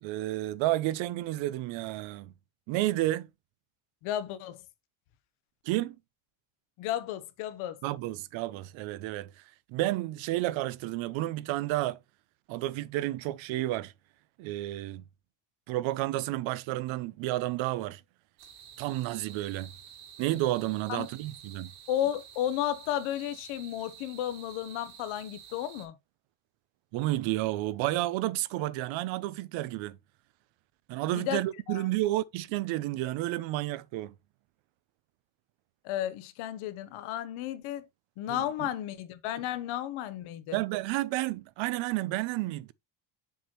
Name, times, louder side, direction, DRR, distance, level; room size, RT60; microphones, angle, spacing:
voice 1, 0.0-2.3 2.7-3.3 5.6-6.0 7.8-9.4 9.7-12.0 12.5-13.9 14.4-15.0 15.7-18.0 18.8-19.7 20.2-21.7 26.9-30.0 30.9-34.1 38.3-38.7 40.5-42.7, right 16 dB, 70° right, 0.6 m, -31 dB
voice 2, 4.0-4.6 6.8-7.8 20.9-21.1 21.9-25.9 31.1-31.4 31.7-31.9 35.8-37.9 38.2-40.6, left 11 dB, 75° left, 1.0 m, -33 dB
sound 1, 18.4-25.9, right 8 dB, 85° right, 3.7 m, -50 dB
7.1 x 6.1 x 2.9 m
cardioid pair, 140°, 49 cm